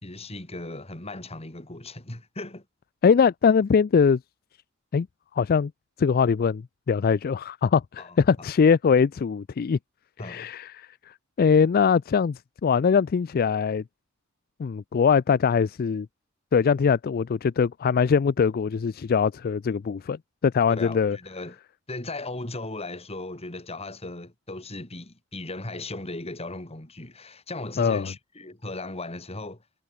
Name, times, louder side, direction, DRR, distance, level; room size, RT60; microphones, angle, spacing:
voice 1, 0.0-2.6 8.0-8.5 10.2-10.5 20.7-21.6 21.9-29.6, left 2 dB, 30° left, 3.1 m, -37 dB
voice 2, 3.0-4.2 4.9-5.1 5.4-5.7 6.0-9.8 10.2-10.9 11.4-13.8 14.6-16.1 16.5-21.2 27.8-28.1, left 6 dB, 45° left, 0.4 m, -22 dB
head